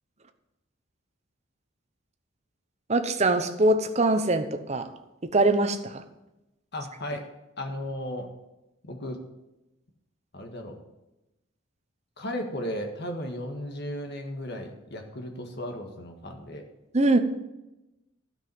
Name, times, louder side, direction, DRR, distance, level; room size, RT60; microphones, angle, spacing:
voice 1, 2.9-4.9 5.3-6.0 16.9-17.2, right 2 dB, 35° right, 9 dB, 0.9 m, -23 dB
voice 2, 6.7-7.3 7.6-8.3 8.8-9.2 10.3-10.8 12.2-16.6, left 1 dB, 55° left, 4 dB, 1.7 m, -35 dB
12.5 x 5.6 x 7.8 m, 0.96 s
head